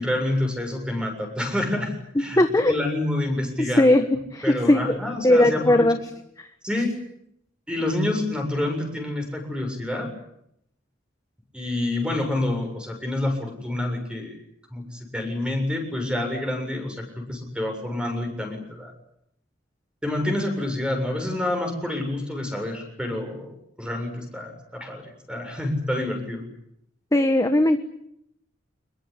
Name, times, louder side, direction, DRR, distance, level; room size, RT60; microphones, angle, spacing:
voice 1, 0.0-2.4 2.7-3.8 4.4-5.9 6.6-6.9 7.7-10.1 11.5-14.4 14.7-18.9 20.0-23.5 23.8-26.5, left 1 dB, 5° right, 4 dB, 7.2 m, -28 dB
voice 2, 2.4-2.7 3.6-5.0 5.2-6.0 6.4-6.5 27.1-27.8, left 1 dB, 20° left, 7 dB, 1.3 m, -19 dB
26.0 x 22.0 x 9.9 m, 0.77 s
head